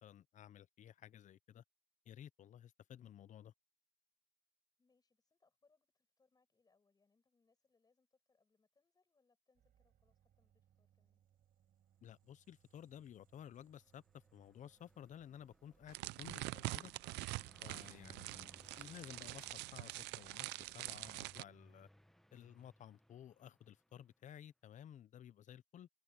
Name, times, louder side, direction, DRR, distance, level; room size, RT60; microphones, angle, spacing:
voice 1, 0.0-1.6 2.1-3.5 12.0-16.9 17.6-21.9 22.3-25.9, left 10 dB, 50° left, 0.7 m, -55 dB
voice 2, 4.8-11.2, left 4 dB, 25° left, 7.2 m, -79 dB
scaryscape bassfriedfilter, 9.5-17.0, right 10 dB, 55° right, 6.8 m, -75 dB
Car passing by, 13.1-24.1, equal, ahead, 1.0 m, -66 dB
sound 1, 15.9-21.4, right 20 dB, 85° right, 0.6 m, -45 dB
cardioid pair, 110°, 17 cm